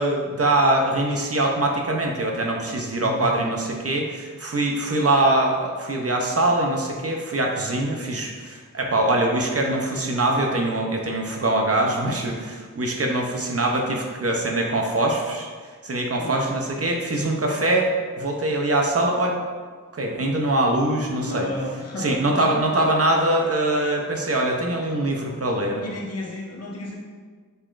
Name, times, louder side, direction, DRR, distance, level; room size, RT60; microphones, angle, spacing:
voice 1, 0.0-15.5 15.8-19.4 19.9-21.5 22.0-25.8, right 1 dB, 45° right, 1 dB, 0.7 m, -23 dB
voice 2, 3.0-3.3 16.2-16.5 21.1-22.2 25.8-26.9, left 2 dB, 50° left, -2 dB, 0.8 m, -32 dB
5.4 x 3.7 x 2.5 m, 1.5 s
wide cardioid pair, 40°, 33 cm